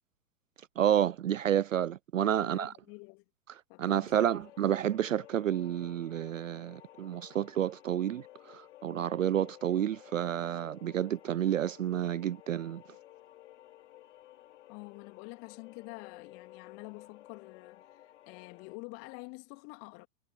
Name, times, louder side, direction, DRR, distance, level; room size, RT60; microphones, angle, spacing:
voice 1, 0.8-2.7 3.8-12.8, right 10 dB, 55° right, 0.5 m, -30 dB
voice 2, 2.2-3.2 3.7-4.7 14.7-17.8 18.3-20.1, left 30 dB, 30° left, 2.7 m, -48 dB
sound 1, 4.1-18.8, left 14 dB, 45° left, 4.1 m, -55 dB
figure-of-eight pair, 110°, 47 cm